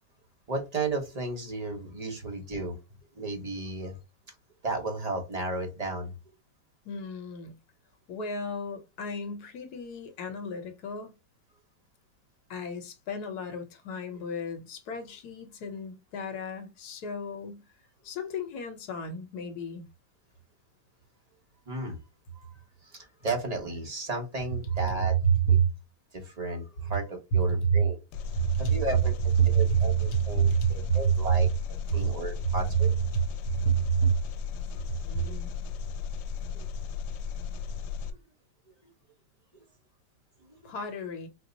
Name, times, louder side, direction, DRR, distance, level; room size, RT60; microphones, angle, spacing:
voice 1, 0.5-2.8 3.1-3.9 4.6-6.1 21.7-22.0 22.3-22.5 22.8-25.1 26.1-28.0 28.6-29.1 29.5-31.5 31.9-32.9 34.7-34.8 35.3-35.4 36.5-36.6, right 2 dB, 30° right, 0.8 m, -34 dB
voice 2, 6.8-7.5 8.1-11.1 12.5-17.6 18.0-19.8 25.2-25.7 27.7-27.9 28.3-28.8 29.4-31.1 31.9-32.1 32.4-32.5 32.8-34.2 35.1-35.5 40.6-41.3, right 6 dB, 65° left, 1.3 m, -29 dB
Engine, 28.1-38.1, left 6 dB, 85° left, 1.3 m, -35 dB
4.4 x 2.0 x 3.9 m
omnidirectional pair, 2.0 m